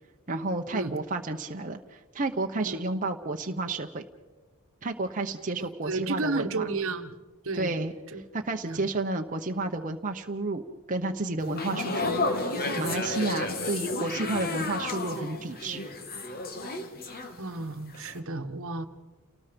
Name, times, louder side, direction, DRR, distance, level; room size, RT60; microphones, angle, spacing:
voice 1, 0.3-4.0 4.8-6.7 7.6-7.9 8.3-10.6 10.9-12.2 12.8-15.8, right 2 dB, 35° right, 3 dB, 1.0 m, -31 dB
voice 2, 5.8-7.2 7.4-8.2 8.6-8.9 17.4-18.9, right 3 dB, 65° right, 8 dB, 1.3 m, -32 dB
sound 1, 11.4-17.7 17.9-18.2, left 2 dB, 45° left, 2.0 m, -32 dB
29.5 x 19.0 x 5.3 m, 1.3 s
head